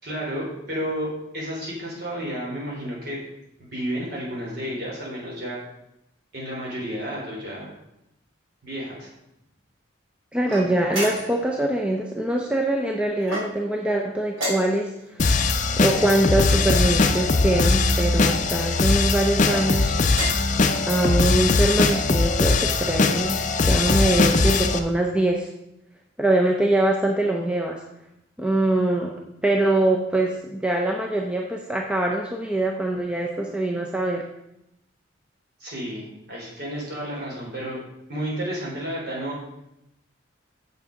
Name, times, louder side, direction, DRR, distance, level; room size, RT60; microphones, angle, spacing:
voice 1, 0.0-3.2 3.6-5.6 6.3-7.7 8.6-9.1 35.6-37.8 38.1-39.4, equal, 50° right, -4 dB, 3.5 m, -31 dB
voice 2, 10.3-15.3 15.8-19.9 20.9-25.5 26.2-27.8 28.4-29.1 29.4-34.3, right 1 dB, 5° right, 0 dB, 0.6 m, -23 dB
sound 1, 10.5-11.5 13.2-13.8 14.3-15.1 15.9-16.9 17.8-18.3 19.3-19.6 20.1-20.6, right 1 dB, 80° right, 3.0 m, -32 dB
sound 2, 15.2-24.8, left 3 dB, 40° left, 0.5 m, -21 dB
7.1 x 6.0 x 5.1 m, 0.84 s
head